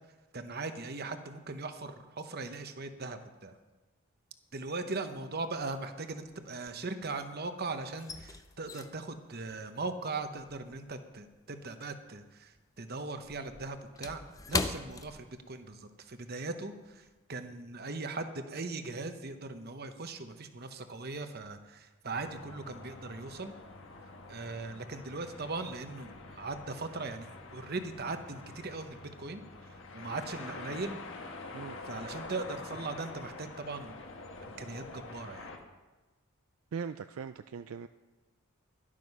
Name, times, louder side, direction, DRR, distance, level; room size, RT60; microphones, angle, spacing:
voice 1, 0.3-3.6 4.5-14.2 14.5-23.5 24.3-31.0 31.9-33.9 34.4-35.5, right 3 dB, 45° right, 8 dB, 0.9 m, -39 dB
sound 1, 4.5-5.1 5.3-7.3 7.6-12.3 12.6-15.9 16.2-16.4 16.8-17.1, left 3 dB, 15° left, 0.5 m, -40 dB
sound 2, 22.1-35.6, left 3 dB, 55° left, 1.5 m, -46 dB
voice 2, 36.7-37.9, right 6 dB, 70° right, 11 dB, 0.4 m, -40 dB
12.5 x 11.5 x 5.5 m, 1.2 s
head